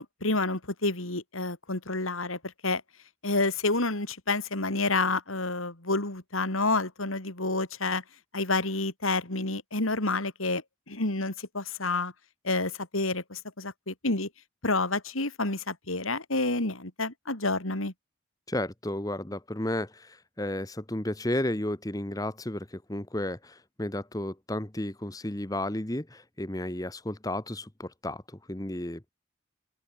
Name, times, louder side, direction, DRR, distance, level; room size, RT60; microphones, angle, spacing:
voice 1, 0.0-2.8 3.2-8.0 8.3-10.6 10.9-12.1 12.4-14.3 14.6-17.9, left 2 dB, 90° left, 4.6 m, -29 dB
voice 2, 18.5-29.1, left 1 dB, 15° left, 1.2 m, -33 dB
open air
head